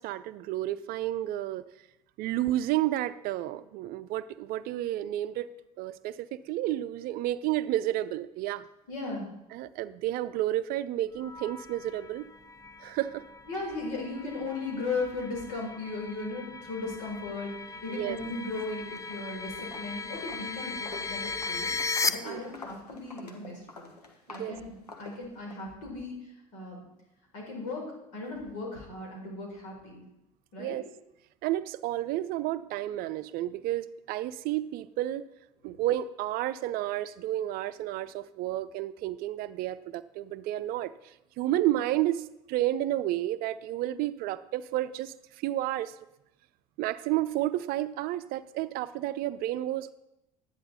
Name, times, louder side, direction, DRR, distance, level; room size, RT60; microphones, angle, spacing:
voice 1, 0.0-1.7 2.2-5.5 5.8-8.7 9.5-12.3 12.8-13.2 17.9-18.2 22.2-22.5 24.3-24.5 30.6-30.8 31.4-35.3 35.6-45.9 46.8-49.9, right 14 dB, 50° right, 15 dB, 0.5 m, -31 dB
voice 2, 8.9-9.3 13.5-21.7 22.1-23.9 24.3-26.8 27.3-30.0 30.5-30.8 35.7-35.8, left 3 dB, 70° left, -1 dB, 4.5 m, -37 dB
sound 1, 11.2-22.1, left 4 dB, 15° left, 0.7 m, -37 dB
Walk footsteps, 19.0-19.3 19.6-25.6, left 3 dB, 85° left, 1.2 m, -47 dB
11.5 x 10.0 x 4.1 m, 0.88 s
figure-of-eight pair, 65°, 20 cm